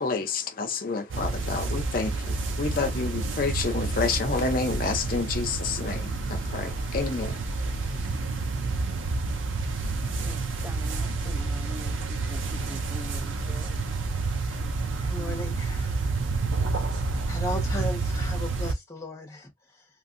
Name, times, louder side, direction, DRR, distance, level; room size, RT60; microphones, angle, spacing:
voice 1, 0.0-8.0, left 4 dB, 45° left, 0.6 m, -29 dB
sound 1, 1.1-18.7, right 3 dB, 85° right, 0.5 m, -29 dB
voice 2, 10.2-13.8, equal, 10° right, 0.4 m, -44 dB
voice 3, 15.0-16.1 17.3-19.8, left 1 dB, 15° left, 1.0 m, -36 dB
2.8 x 2.6 x 2.5 m
head